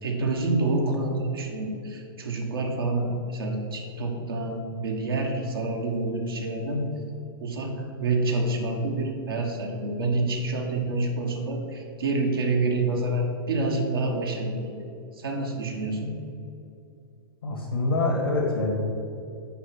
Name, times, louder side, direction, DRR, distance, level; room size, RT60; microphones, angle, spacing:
voice 1, 0.0-6.9 7.4-14.5 15.1-16.1, right 2 dB, 80° right, 0 dB, 1.4 m, -27 dB
voice 2, 17.4-18.7, left 2 dB, 75° left, -1 dB, 1.8 m, -25 dB
8.0 x 4.9 x 6.1 m, 2.6 s
figure-of-eight pair, 105°, 12 cm